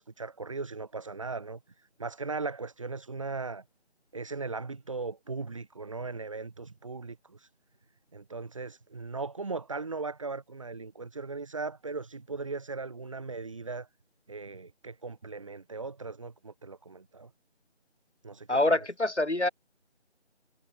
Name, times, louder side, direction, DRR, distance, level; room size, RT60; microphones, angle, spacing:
voice 1, 0.0-3.6 4.1-7.5 8.1-13.9 14.3-17.3 18.2-18.8, right 4 dB, 30° right, 2.9 m, -38 dB
voice 2, 18.5-19.5, left 2 dB, 80° left, 3.9 m, -25 dB
figure-of-eight pair, 165°, 34 cm